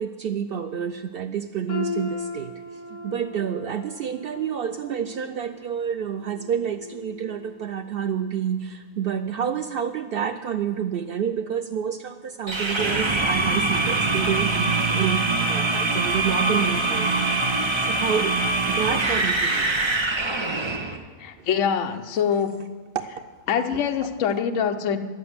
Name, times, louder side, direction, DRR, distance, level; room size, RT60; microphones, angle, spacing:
voice 1, 0.0-2.5 2.9-18.4 18.7-19.7 21.4-21.5 22.9-23.3 23.7-23.8, right 8 dB, 90° right, 9 dB, 0.5 m, -29 dB
sound 1, 1.7-7.6 8.0-8.3 9.0-9.1, left 5 dB, 85° left, 2.0 m, -38 dB
sound 2, 12.5-21.0, right 3 dB, 25° right, 0.8 m, -23 dB
voice 2, 21.2-22.6 23.1-23.2 23.5-25.0, left 7 dB, 60° left, 7 dB, 1.1 m, -24 dB
11.0 x 8.0 x 9.5 m, 1.4 s
omnidirectional pair, 1.6 m